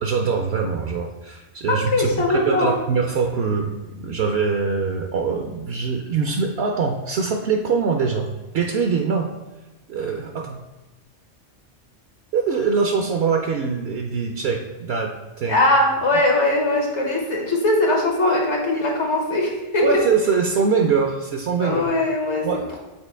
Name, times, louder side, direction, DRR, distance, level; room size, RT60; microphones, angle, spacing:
voice 1, 0.0-8.3 8.5-9.3 9.9-10.6 12.3-15.6 19.8-21.8 22.4-22.7, right 5 dB, 65° right, 2 dB, 0.8 m, -23 dB
voice 2, 1.7-2.7 15.5-19.9 21.6-22.5, left 2 dB, 70° left, 0 dB, 1.5 m, -20 dB
7.3 x 4.2 x 3.3 m, 1.1 s
omnidirectional pair, 1.3 m